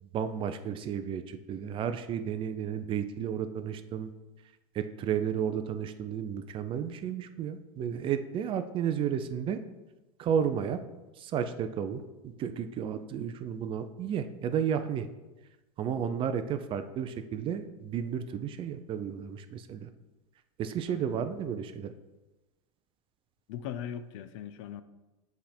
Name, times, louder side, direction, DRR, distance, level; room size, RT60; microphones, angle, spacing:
voice 1, 0.0-4.1 4.7-9.6 10.2-10.8 11.2-15.1 15.8-19.9 20.6-21.9, right 8 dB, 30° right, 10 dB, 0.4 m, -32 dB
voice 2, 20.9-21.2 23.5-24.8, left 9 dB, 60° left, 11 dB, 0.5 m, -39 dB
7.5 x 3.5 x 4.3 m, 1.1 s
hypercardioid pair, 120°, 18 cm